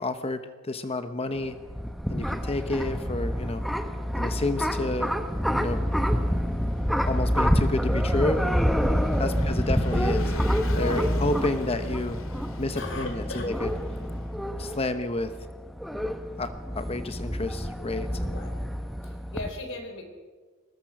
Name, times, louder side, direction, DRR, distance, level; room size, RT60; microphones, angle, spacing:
voice 1, 0.0-1.5 2.1-3.6 4.2-5.1 5.5-5.8 7.1-8.4 9.2-12.2 12.6-13.7 14.6-15.3 16.4-18.3, left 2 dB, 30° left, 9 dB, 0.9 m, -30 dB
sound 1, 1.4-19.5, equal, ahead, 1.0 m, -27 dB
Vehicle / Engine, 4.7-14.4, left 1 dB, 85° left, 2.4 m, -42 dB
voice 2, 8.9-9.4 10.7-11.1 12.3-12.4 12.7-13.5 18.3-18.5 19.0-20.0, left 2 dB, 65° left, 4 dB, 4.2 m, -36 dB
23.0 x 19.5 x 6.0 m, 1.4 s
head